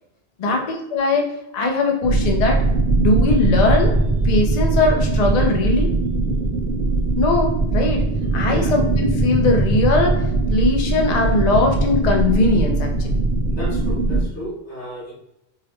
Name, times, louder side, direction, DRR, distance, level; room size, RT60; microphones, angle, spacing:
voice 1, 0.4-2.6 3.0-3.9 4.2-5.9 7.2-8.0 8.3-10.2 10.5-13.2, left 3 dB, 50° left, 2 dB, 0.6 m, -20 dB
sound 1, 2.0-14.3, right 2 dB, 80° right, 0.8 m, -20 dB
voice 2, 13.5-15.1, right 1 dB, 80° left, -4 dB, 1.7 m, -33 dB
4.7 x 2.1 x 2.9 m, 0.86 s
omnidirectional pair, 1.1 m